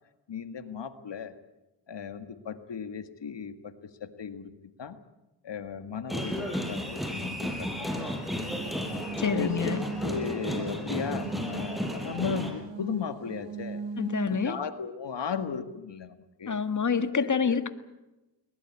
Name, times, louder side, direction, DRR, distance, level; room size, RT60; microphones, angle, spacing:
voice 1, 0.3-1.3 1.9-3.7 4.0-4.5 4.8-5.0 5.4-8.3 9.3-9.5 10.0-13.8 14.3-16.6 17.1-17.6, left 6 dB, 70° left, 9 dB, 1.9 m, -36 dB
sound 1, 6.1-12.5, equal, ahead, 5.8 m, -33 dB
sound 2, 8.5-14.4, right 4 dB, 80° right, 1.6 m, -39 dB
voice 2, 9.2-9.8 14.0-14.6 16.5-17.7, left 6 dB, 40° left, 10 dB, 1.8 m, -27 dB
22.0 x 21.0 x 8.7 m, 0.99 s
cardioid pair, 70°, 44 cm